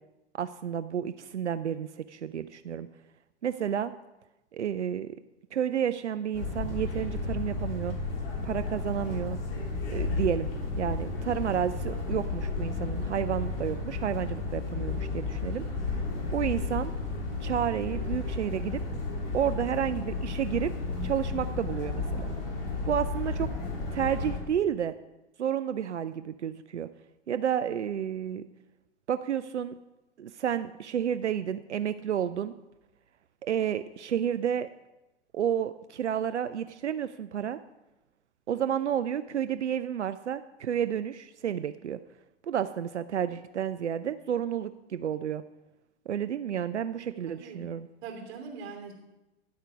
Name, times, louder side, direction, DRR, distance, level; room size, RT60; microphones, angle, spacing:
voice 1, 0.3-2.9 3.4-3.9 4.5-5.2 5.5-8.0 8.4-9.4 9.9-10.5 10.8-15.6 16.3-16.9 17.4-18.8 19.3-20.7 21.0-22.3 22.9-23.5 23.9-24.9 25.4-26.9 27.3-28.4 29.1-29.7 30.2-32.5 33.4-34.7 35.3-37.6 38.5-42.0 42.4-45.4 46.1-47.9, right 9 dB, 90° right, 12 dB, 0.5 m, -31 dB
sound 1, 6.3-24.4, left 3 dB, 55° left, 3.3 m, -33 dB
voice 2, 47.3-47.7 48.0-48.9, right 5 dB, 35° right, 2 dB, 3.0 m, -41 dB
10.5 x 8.0 x 5.1 m, 1.0 s
figure-of-eight pair, 100°, 34 cm